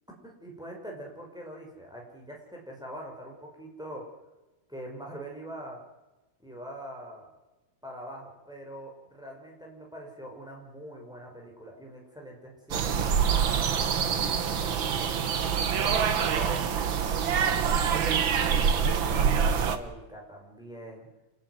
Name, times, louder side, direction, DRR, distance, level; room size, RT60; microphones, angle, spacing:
voice 1, 0.2-4.0 4.7-5.8 6.4-7.3 7.8-12.9 13.4-15.2 15.8-17.0 17.3-18.0 18.5-21.1, equal, ahead, -1 dB, 6.0 m, -43 dB
sound 1, 12.7-19.8, right 7 dB, 50° right, 1.6 m, -25 dB
27.5 x 15.0 x 9.8 m, 1.1 s
omnidirectional pair, 3.8 m